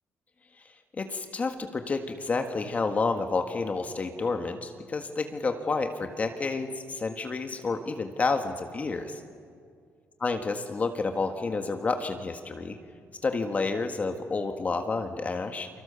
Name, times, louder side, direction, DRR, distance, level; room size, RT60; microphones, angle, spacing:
voice 1, 0.9-9.2 10.2-12.8 13.2-15.7, left 3 dB, 30° left, 6 dB, 1.7 m, -30 dB
29.5 x 25.0 x 7.0 m, 2.2 s
cardioid pair, 135°, 5 cm